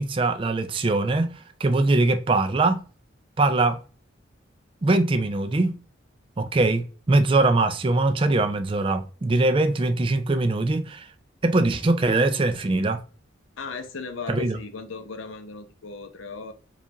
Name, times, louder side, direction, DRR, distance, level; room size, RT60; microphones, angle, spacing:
voice 1, 0.0-2.8 3.4-3.8 4.8-5.8 6.4-11.1 11.4-13.0 14.3-14.6, right 2 dB, 25° right, 0.4 m, -22 dB
voice 2, 13.6-16.5, left 4 dB, 90° left, 0.7 m, -36 dB
4.8 x 2.4 x 2.9 m
head